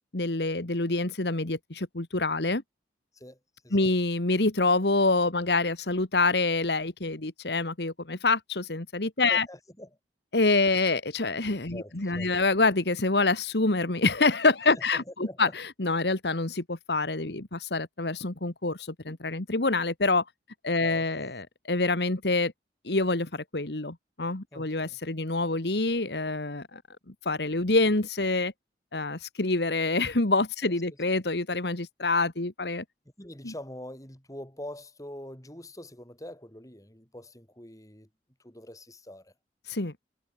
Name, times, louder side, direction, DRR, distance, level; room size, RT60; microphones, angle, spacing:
voice 1, 0.1-2.6 3.7-9.5 10.3-20.2 20.6-22.5 22.9-26.8 27.3-28.5 28.9-32.8 33.4-33.5 39.7-39.9, left 3 dB, 65° left, 1.9 m, -26 dB
voice 2, 9.3-9.9 11.7-12.3 14.8-15.5 20.8-21.1 24.5-25.0 30.6-30.7 33.2-38.1 38.4-39.3, left 1 dB, 20° left, 7.1 m, -44 dB
head